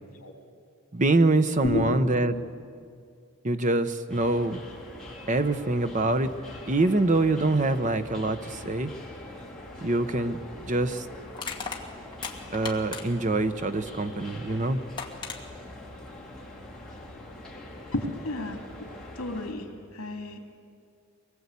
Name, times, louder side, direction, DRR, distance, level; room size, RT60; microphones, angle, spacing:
voice 1, 0.9-2.4 3.4-4.6 5.3-6.3 6.7-8.9 9.8-10.4 10.6-11.1 12.5-14.8, right 2 dB, 35° right, 9 dB, 0.9 m, -24 dB
sound 1, 4.1-19.5, left 1 dB, 5° left, 3.0 m, -43 dB
Crushing, 11.3-13.3 14.5-14.6 15.0-15.4, left 5 dB, 20° left, 1.9 m, -36 dB
voice 2, 17.9-18.6 19.1-20.4, left 1 dB, 70° left, 3 dB, 3.0 m, -31 dB
24.0 x 20.0 x 8.4 m, 2.3 s
head